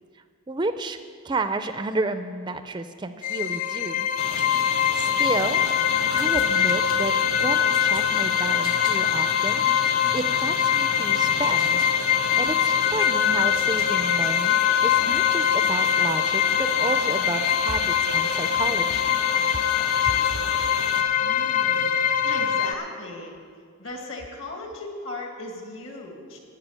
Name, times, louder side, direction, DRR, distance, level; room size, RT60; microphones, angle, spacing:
voice 1, 0.5-1.0 1.2-4.1 4.9-5.6 6.1-9.6 10.1-11.8 12.4-14.6 14.8-19.1, right 3 dB, 20° right, 10 dB, 0.4 m, -31 dB
sound 1, 3.2-22.7, left 8 dB, 35° left, 0.5 m, -23 dB
sound 2, 4.2-21.0, left 5 dB, 80° left, 1.1 m, -34 dB
voice 2, 21.2-21.9 22.2-23.3 23.8-26.4, left 2 dB, 65° left, 1 dB, 2.2 m, -37 dB
15.0 x 5.8 x 8.9 m, 2.1 s
head